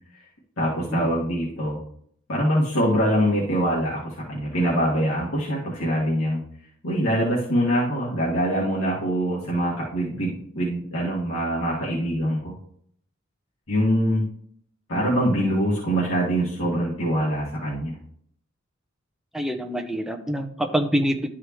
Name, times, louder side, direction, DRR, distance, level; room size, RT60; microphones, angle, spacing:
voice 1, 0.6-1.8 2.3-6.4 6.8-12.5 13.7-14.2 14.9-18.0, equal, 80° left, -6 dB, 2.0 m, -24 dB
voice 2, 19.3-21.3, equal, ahead, 3 dB, 0.7 m, -25 dB
12.0 x 4.8 x 3.1 m, 0.64 s
head